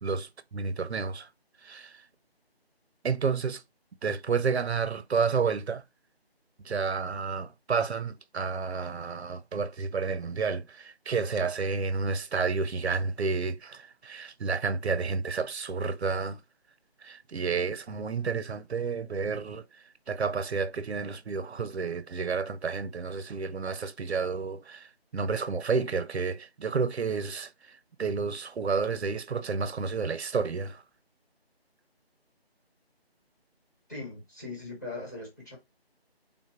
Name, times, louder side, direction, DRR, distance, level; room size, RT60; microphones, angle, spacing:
voice 1, 0.0-1.3 1.6-2.0 3.0-3.6 4.0-5.8 6.6-16.4 17.0-19.6 20.1-30.8, right 5 dB, 85° right, 0.6 m, -30 dB
voice 2, 33.9-35.6, left 3 dB, 15° left, 1.1 m, -40 dB
3.5 x 2.5 x 4.5 m
figure-of-eight pair, 175°, 32 cm